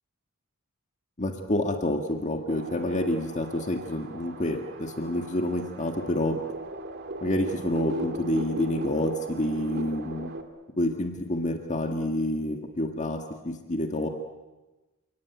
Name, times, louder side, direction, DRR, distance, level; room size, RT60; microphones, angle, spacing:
voice 1, 1.2-6.3 7.2-10.3 10.8-14.1, left 1 dB, 35° left, 4 dB, 1.8 m, -28 dB
sound 1, 2.5-10.4, right 2 dB, 50° right, 2.1 m, -38 dB
29.0 x 18.0 x 9.5 m, 1.2 s
head